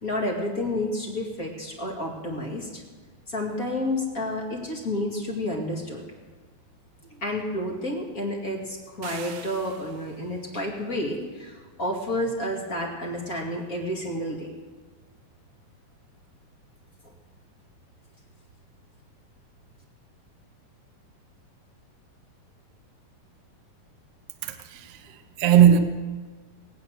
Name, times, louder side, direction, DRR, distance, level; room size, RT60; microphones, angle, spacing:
voice 1, 0.0-2.8 3.3-6.0 7.1-14.5 17.0-17.1, left 1 dB, 30° left, 2.0 m, -30 dB
sound 1, 9.0-10.3, right 9 dB, 80° right, 2.7 m, -43 dB
voice 2, 24.4-25.8, right 9 dB, 65° right, 1.7 m, -19 dB
21.0 x 9.1 x 6.4 m
omnidirectional pair, 4.2 m